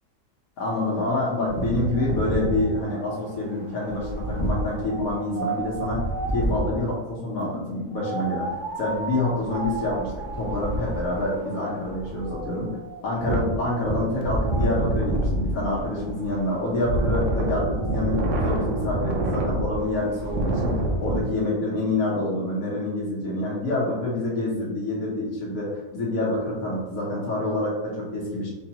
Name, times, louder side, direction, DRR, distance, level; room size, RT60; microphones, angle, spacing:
voice 1, 0.6-6.0 6.3-12.7 13.0-28.5, left 2 dB, 80° left, -5 dB, 1.4 m, -27 dB
Wind, 1.5-6.9 7.9-21.2, right 1 dB, 65° right, 1.0 m, -28 dB
4.9 x 2.3 x 2.8 m, 1.1 s
omnidirectional pair, 1.5 m